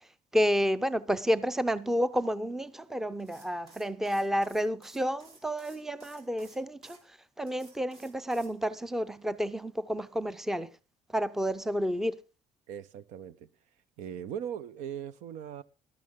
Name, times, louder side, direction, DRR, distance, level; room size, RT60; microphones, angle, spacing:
voice 1, 0.3-10.7 11.1-12.2, equal, 5° right, 0.5 m, -30 dB
sound 1, 3.2-7.0 7.5-8.5, right 3 dB, 55° right, 3.9 m, -56 dB
voice 2, 12.7-13.5 14.0-15.6, right 9 dB, 90° right, 0.8 m, -39 dB
14.5 x 12.0 x 3.7 m
cardioid pair, 135°, 12 cm